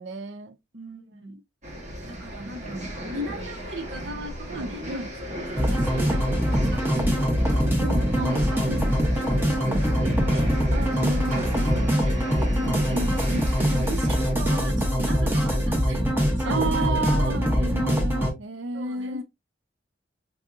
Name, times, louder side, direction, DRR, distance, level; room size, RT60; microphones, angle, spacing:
voice 1, 0.0-0.6 4.5-5.1 7.8-9.0 10.7-12.1 12.5-13.9 16.5-19.2, right 2 dB, 70° right, 0.5 m, -33 dB
voice 2, 0.7-1.4 2.0-7.7 8.0-8.7 9.1-10.6 11.5-13.2 13.6-16.9 17.4-17.8 18.7-19.2, right 1 dB, 85° right, 1.2 m, -39 dB
sound 1, 1.6-14.4, equal, 40° right, 1.1 m, -36 dB
sound 2, 5.6-18.3, equal, 10° right, 0.8 m, -23 dB
4.6 x 2.6 x 2.4 m
head